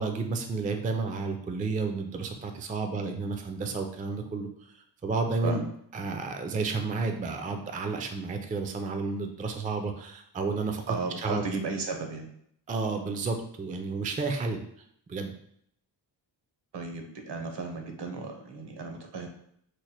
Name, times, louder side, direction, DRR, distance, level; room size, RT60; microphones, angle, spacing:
voice 1, 0.0-5.6 5.9-10.9 11.2-11.4 12.7-14.6 15.1-15.3, right 4 dB, 20° right, 5 dB, 0.3 m, -31 dB
voice 2, 10.9-12.3 16.7-19.3, right 4 dB, 65° right, 4 dB, 0.8 m, -34 dB
3.2 x 2.1 x 4.2 m, 0.68 s
cardioid pair, 75°, 44 cm